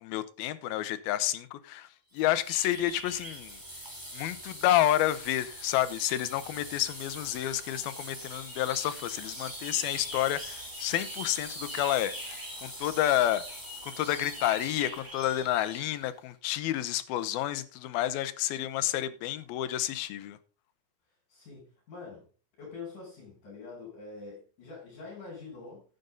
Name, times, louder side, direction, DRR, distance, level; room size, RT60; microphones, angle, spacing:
voice 1, 0.0-1.9 2.1-3.6 4.1-12.3 12.6-13.4 13.8-20.4, left 13 dB, 85° left, 2.7 m, -29 dB
sound 1, 2.2-16.0, equal, 5° right, 3.2 m, -42 dB
voice 2, 21.3-22.3 22.6-25.8, left 4 dB, 60° left, 7.9 m, -45 dB
12.0 x 9.2 x 3.9 m
omnidirectional pair, 4.2 m